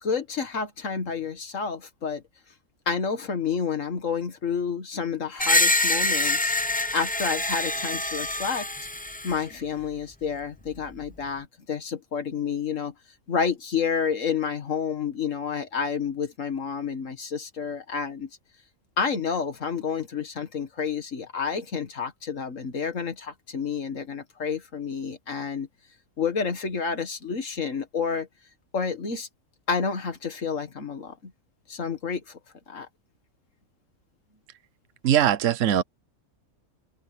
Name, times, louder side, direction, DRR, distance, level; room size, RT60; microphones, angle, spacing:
voice 1, 0.0-2.2 2.9-6.5 6.9-8.7 9.2-12.9 13.3-18.3 19.0-25.7 26.2-28.3 28.7-29.3 29.7-31.3 31.7-32.4 32.7-32.9, left 6 dB, 65° left, 2.2 m, -29 dB
Screech, 5.4-9.4, left 2 dB, 10° left, 0.5 m, -25 dB
voice 2, 35.0-35.8, right 10 dB, 65° right, 1.3 m, -21 dB
open air
omnidirectional pair, 1.5 m